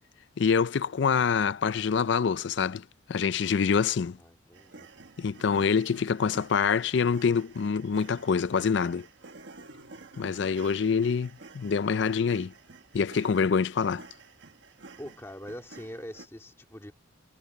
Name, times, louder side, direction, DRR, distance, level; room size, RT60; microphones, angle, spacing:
voice 1, 0.4-4.2 5.2-9.1 10.2-12.5 12.9-14.0, left 6 dB, 60° left, 0.4 m, -26 dB
voice 2, 4.2-4.9 15.0-16.9, equal, 15° left, 2.1 m, -43 dB
sound 1, 4.5-16.3, right 3 dB, 65° right, 1.5 m, -51 dB
head